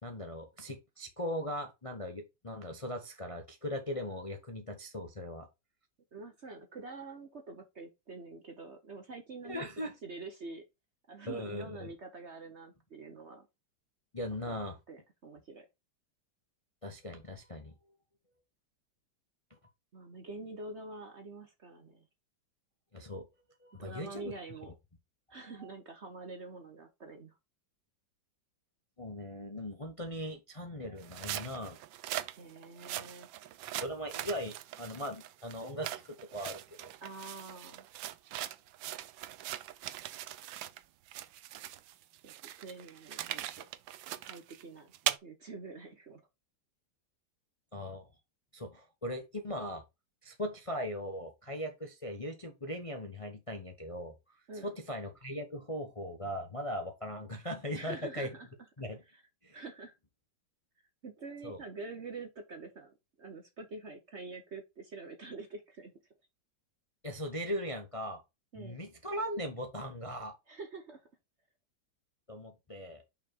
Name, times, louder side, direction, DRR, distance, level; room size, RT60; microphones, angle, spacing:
voice 1, 0.0-5.5 9.4-9.9 11.3-11.9 14.1-14.8 16.8-17.7 19.5-19.6 22.9-23.3 23.6-24.3 29.0-31.8 33.8-36.9 47.7-48.1 48.5-49.8 50.2-54.1 54.6-58.3 58.8-59.0 59.4-59.6 61.4-61.6 67.0-68.2 68.6-70.4 72.3-73.0, equal, 25° left, 0.8 m, -39 dB
voice 2, 6.1-10.6 11.1-13.5 14.4-14.5 14.9-15.7 19.9-22.1 23.8-24.8 25.3-27.3 32.4-33.3 37.0-37.9 42.2-43.6 44.2-44.9 45.2-46.3 54.5-54.7 57.7-58.5 59.1-59.2 59.5-59.9 61.0-65.9 68.5-68.8 70.5-71.1, right 3 dB, 45° right, 1.0 m, -46 dB
sound 1, 31.0-40.8 41.1-45.2, right 13 dB, 90° right, 1.4 m, -40 dB
5.6 x 4.6 x 4.4 m
omnidirectional pair, 2.1 m